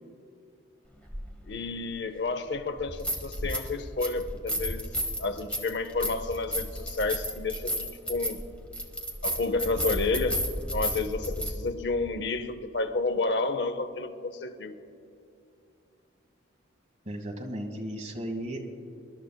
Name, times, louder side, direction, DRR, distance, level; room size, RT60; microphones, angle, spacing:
sound 1, 1.1-1.2 2.8-3.7 4.0-11.5, equal, 5° left, 1.0 m, -32 dB
voice 1, 1.5-4.9 5.2-8.4 9.2-14.8, left 3 dB, 60° left, 10 dB, 0.6 m, -30 dB
voice 2, 17.0-18.6, right 1 dB, 35° right, 2 dB, 1.3 m, -35 dB
24.0 x 12.0 x 2.2 m, 2.7 s
head